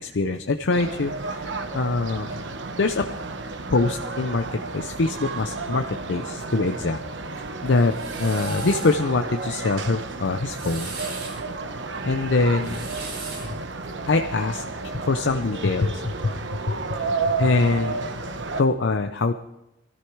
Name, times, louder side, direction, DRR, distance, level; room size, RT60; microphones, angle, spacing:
voice 1, 0.0-2.4 2.8-3.1 3.7-7.0 7.6-10.9 12.0-12.9 13.4-13.6 14.1-16.3 16.7-17.1 17.4-18.0 18.6-19.3, left 3 dB, 80° left, 6 dB, 0.7 m, -24 dB
sound 1, 0.7-18.6, right 3 dB, 90° right, 1.1 m, -32 dB
sound 2, 7.7-9.0 10.3-11.4 12.5-13.6, right 4 dB, 75° right, 5.3 m, -38 dB
20.0 x 13.5 x 4.7 m, 0.92 s
head